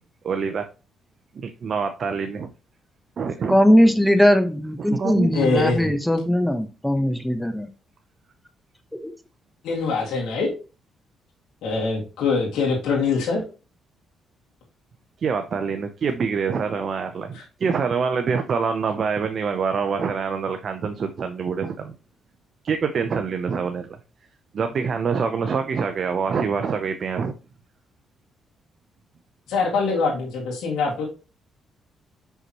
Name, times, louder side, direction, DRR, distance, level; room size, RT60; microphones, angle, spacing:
voice 1, 0.2-0.7 1.3-2.5 3.2-3.6 4.9-5.3 15.2-21.9 22.6-24.0 24.5-27.3, right 5 dB, 50° right, 7 dB, 0.6 m, -25 dB
voice 2, 3.5-7.7 8.9-9.1, equal, 5° left, 9 dB, 0.8 m, -19 dB
voice 3, 5.3-5.9 9.6-10.5 11.6-13.4 29.5-31.0, left 4 dB, 85° left, -4 dB, 2.2 m, -23 dB
5.9 x 5.6 x 3.0 m, 0.33 s
cardioid pair, 90°, 0 cm